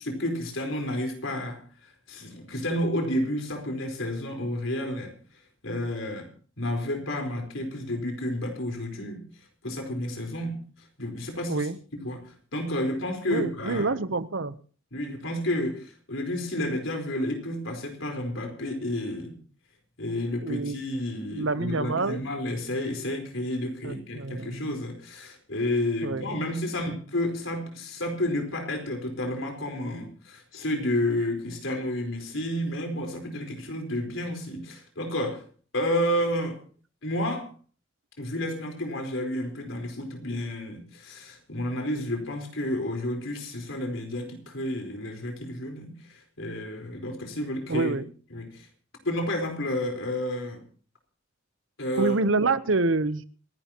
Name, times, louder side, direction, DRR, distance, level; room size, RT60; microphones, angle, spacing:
voice 1, 0.0-5.1 5.6-6.3 6.6-9.2 9.6-11.7 12.0-14.0 14.9-19.4 20.0-35.4 35.7-36.6 37.0-37.5 38.2-48.0 48.3-48.7 49.0-50.6 51.8-52.2, left 1 dB, 75° left, 3 dB, 4.4 m, -31 dB
voice 2, 13.3-14.6 20.4-20.8 21.3-22.2 23.8-24.7 26.0-26.4 47.7-48.1 52.0-53.2, right 3 dB, 70° right, 14 dB, 0.9 m, -27 dB
26.5 x 11.5 x 3.0 m, 0.42 s
head